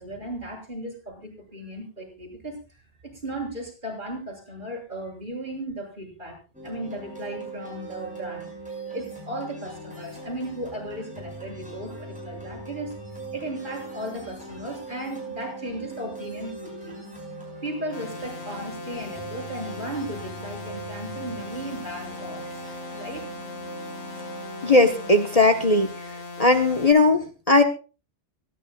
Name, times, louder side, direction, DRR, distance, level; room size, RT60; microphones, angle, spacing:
voice 1, 0.0-2.6 3.0-6.4 6.6-8.6 8.9-12.9 13.3-17.1 17.6-23.3, right 1 dB, 45° right, -1 dB, 7.1 m, -36 dB
sound 1, 6.5-25.2, right 2 dB, 5° right, 7.9 m, -40 dB
sound 2, 17.9-26.9, left 3 dB, 70° left, 2.7 m, -39 dB
voice 2, 24.6-25.9 26.4-27.6, left 2 dB, 35° left, 6 dB, 1.3 m, -18 dB
24.5 x 11.5 x 2.3 m, 0.33 s
omnidirectional pair, 1.1 m